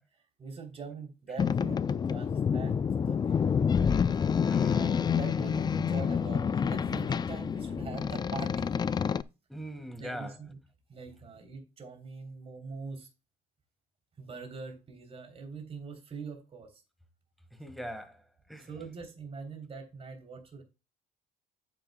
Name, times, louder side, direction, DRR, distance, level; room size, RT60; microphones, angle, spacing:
voice 1, 0.4-2.8 3.1-3.4 4.2-4.3 4.7-8.7 10.0-10.6 10.9-13.1 14.2-16.8 18.6-20.6, right 4 dB, 35° right, 3.4 m, -43 dB
Boat Water vehicle, 1.4-9.2, left 7 dB, 25° left, 0.4 m, -28 dB
voice 2, 4.5-4.8 9.5-10.4 17.5-18.7, equal, ahead, 1.7 m, -42 dB
9.1 x 9.1 x 2.3 m
cardioid pair, 110°, 17 cm